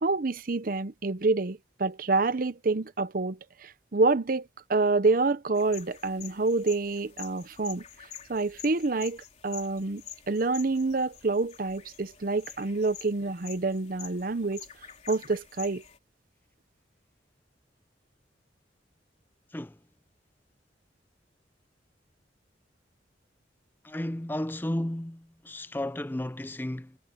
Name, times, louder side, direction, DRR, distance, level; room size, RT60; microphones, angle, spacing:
voice 1, 0.0-7.8 8.3-14.7 15.1-15.8, right 3 dB, 50° right, 0.7 m, -27 dB
sound 1, 5.5-16.0, left 9 dB, 40° left, 3.6 m, -48 dB
voice 2, 23.8-27.0, left 1 dB, 10° left, 0.5 m, -33 dB
head